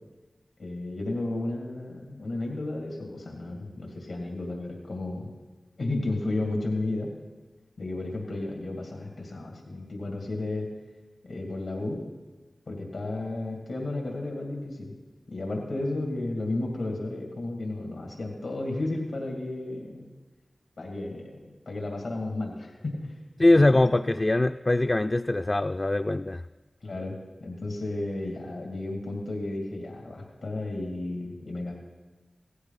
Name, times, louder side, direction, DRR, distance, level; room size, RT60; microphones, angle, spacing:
voice 1, 0.6-5.3 5.8-7.1 7.8-10.7 11.3-12.0 12.7-14.9 15.3-20.1 20.8-23.1 23.5-23.6 26.8-31.7, left 2 dB, 90° left, 1 dB, 2.4 m, -33 dB
voice 2, 23.4-26.4, left 2 dB, 35° left, 7 dB, 0.3 m, -22 dB
17.0 x 14.5 x 4.1 m, 1.3 s
cardioid pair, 45°, 0 cm